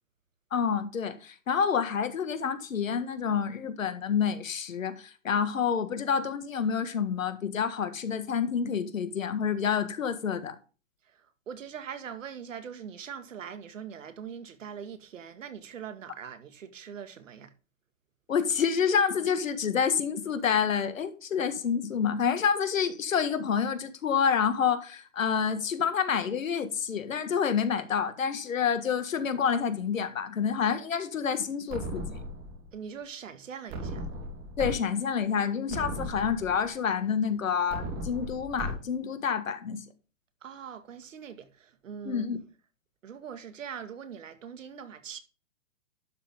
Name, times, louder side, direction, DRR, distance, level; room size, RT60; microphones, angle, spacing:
voice 1, 0.5-10.6 18.3-32.2 34.6-39.9 42.1-42.4, left 7 dB, 80° left, 1.8 m, -28 dB
voice 2, 11.1-17.5 32.7-34.1 40.4-42.3 43.0-45.2, right 7 dB, 75° right, 2.0 m, -42 dB
sound 1, 31.7-32.7 33.7-34.7 35.2-35.3 35.7-36.7 37.7-38.7, right 1 dB, 40° right, 3.8 m, -36 dB
12.0 x 7.3 x 3.6 m
hypercardioid pair, 135°, 39 cm